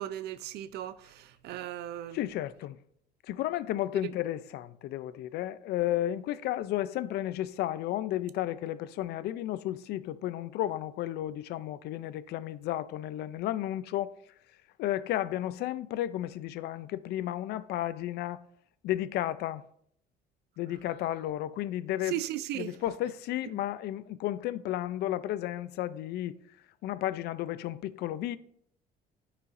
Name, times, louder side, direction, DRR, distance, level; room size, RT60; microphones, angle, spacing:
voice 1, 0.0-2.2 22.1-22.7, right 13 dB, 75° right, 0.6 m, -36 dB
voice 2, 2.1-2.8 3.3-14.1 14.8-18.4 18.8-19.7 20.6-22.2 22.5-26.4 26.8-28.4, left 13 dB, 75° left, 0.4 m, -33 dB
12.0 x 5.0 x 2.6 m
cardioid pair, 110°, 17 cm